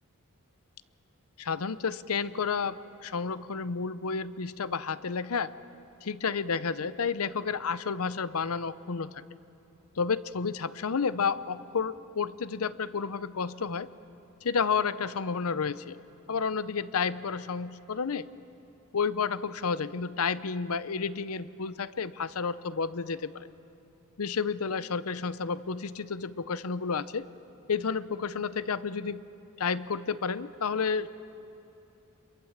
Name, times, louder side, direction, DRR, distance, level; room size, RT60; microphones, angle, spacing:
voice 1, 1.4-5.5 6.0-9.2 10.0-13.9 14.4-16.0 16.3-18.3 18.9-23.5 24.2-27.3 27.7-29.2 29.6-31.1, left 5 dB, 75° left, 15 dB, 0.7 m, -31 dB
26.5 x 23.0 x 7.3 m, 2.8 s
head